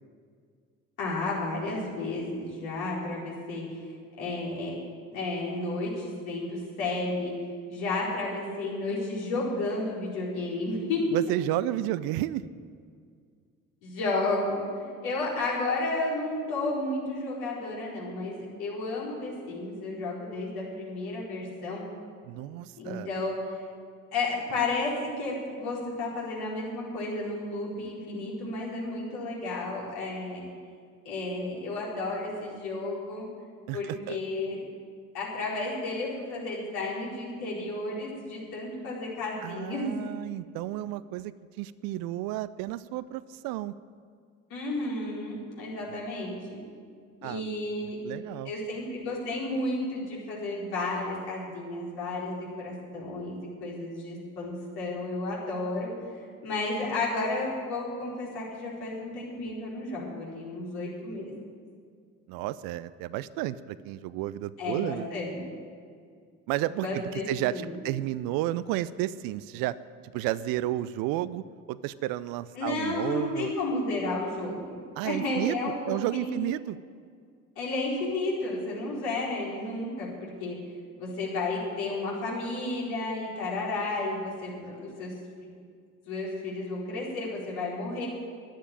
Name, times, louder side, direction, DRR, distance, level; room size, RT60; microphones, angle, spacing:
voice 1, 1.0-3.8 4.2-4.7 5.1-7.3 7.7-11.1 13.8-21.8 22.8-23.3 24.1-30.4 31.0-33.3 33.7-34.6 35.1-39.9 44.5-46.6 47.2-48.0 48.4-55.9 56.4-61.3 64.6-65.4 66.8-67.7 72.6-74.7 75.0-76.4 77.6-80.6 81.0-85.1 86.1-88.1, left 2 dB, 65° left, -4 dB, 4.4 m, -32 dB
voice 2, 11.1-12.5 22.2-23.1 33.7-34.2 39.4-43.7 45.8-46.0 47.2-47.5 47.8-48.5 62.3-65.1 66.5-69.8 70.1-73.5 75.0-76.8, right 14 dB, 60° right, 17 dB, 0.6 m, -32 dB
11.0 x 10.0 x 8.9 m, 2.1 s
figure-of-eight pair, 55°, 41 cm